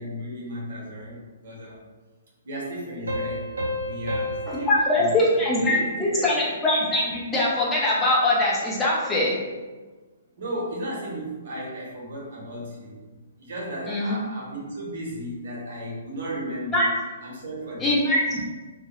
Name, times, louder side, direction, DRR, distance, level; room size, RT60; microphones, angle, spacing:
voice 1, 0.0-1.9 2.4-3.5 3.8-5.2 5.7-6.3 10.4-13.0 13.4-16.8 17.2-18.0, equal, 65° right, -4 dB, 0.9 m, -35 dB
Piano, 3.1-6.4, equal, 85° right, 0.6 m, -32 dB
voice 2, 4.5-9.4 13.9-14.2 16.7-16.9 17.8-18.4, left 1 dB, 15° left, -5 dB, 0.6 m, -22 dB
2.2 x 2.2 x 2.9 m, 1.3 s
hypercardioid pair, 125°, 0 cm